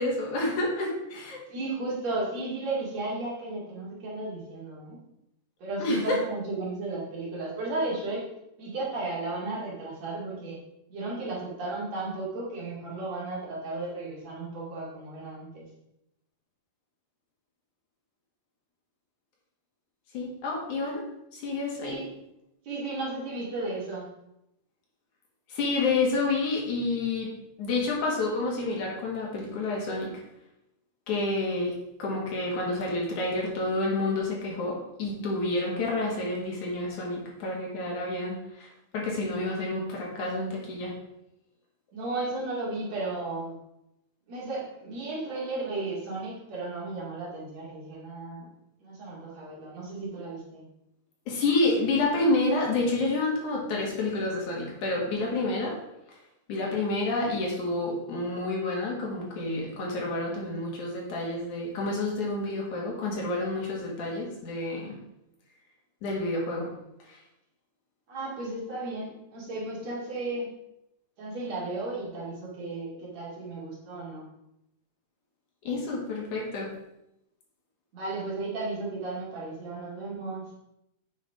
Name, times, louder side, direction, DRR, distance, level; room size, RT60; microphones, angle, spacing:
voice 1, 0.0-1.4 5.8-6.2 20.1-21.0 21.3-22.0 25.5-27.3 27.6-30.1 31.1-38.7 38.9-40.9 51.3-55.7 56.5-65.0 66.0-66.7 67.1-67.2 75.6-76.7, left 2 dB, 65° left, -3 dB, 3.3 m, -29 dB
voice 2, 1.5-5.0 5.6-8.3 8.6-10.6 10.9-15.7 21.8-22.1 22.6-24.1 41.9-43.6 44.3-48.5 48.8-50.6 68.1-70.5 71.2-74.2 77.9-80.5, right 2 dB, 55° right, -5 dB, 3.4 m, -34 dB
9.0 x 5.5 x 5.0 m, 0.84 s
omnidirectional pair, 3.8 m